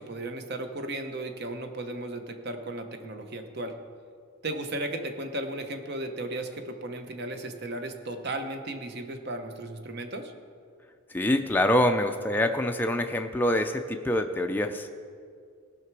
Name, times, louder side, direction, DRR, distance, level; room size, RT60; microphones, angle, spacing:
voice 1, 0.0-3.7 4.4-10.3, right 1 dB, 45° right, 6 dB, 0.9 m, -35 dB
voice 2, 11.1-14.9, left 1 dB, 10° left, 5 dB, 0.4 m, -25 dB
17.5 x 5.9 x 4.7 m, 2.2 s
head